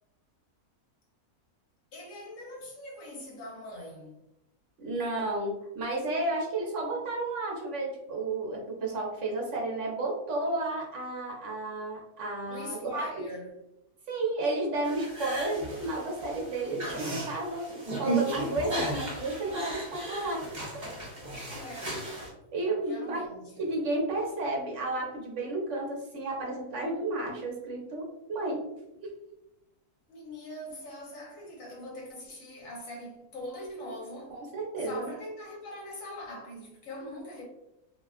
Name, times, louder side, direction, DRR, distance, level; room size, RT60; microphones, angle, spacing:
voice 1, 1.9-4.2 12.5-13.5 21.5-22.1 22.9-23.7 30.1-34.4 34.8-37.4, left 1 dB, 65° left, 1.2 m, -42 dB
voice 2, 4.8-13.1 14.1-20.4 22.5-23.2 23.6-28.6 29.0-29.1 34.3-35.1, right 2 dB, 60° right, 1.0 m, -32 dB
sound 1, 14.8-22.3, right 2 dB, 40° right, 0.6 m, -35 dB
2.8 x 2.3 x 2.3 m
omnidirectional pair, 1.6 m